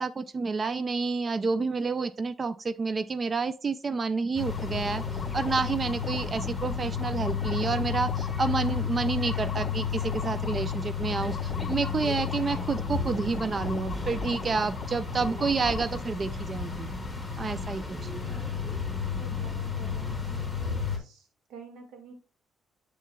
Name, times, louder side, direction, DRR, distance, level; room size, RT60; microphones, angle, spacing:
voice 1, 0.0-5.0 5.3-16.9 17.4-17.8, right 4 dB, 35° right, 14 dB, 0.3 m, -29 dB
sound 1, 4.4-16.0, left 6 dB, 45° left, 0.4 m, -41 dB
sound 2, 4.4-21.0, left 6 dB, 5° right, 2.8 m, -32 dB
voice 2, 19.2-22.1, right 5 dB, 80° right, 5 dB, 1.6 m, -48 dB
7.2 x 6.9 x 2.2 m, 0.35 s
cardioid pair, 90°, 0 cm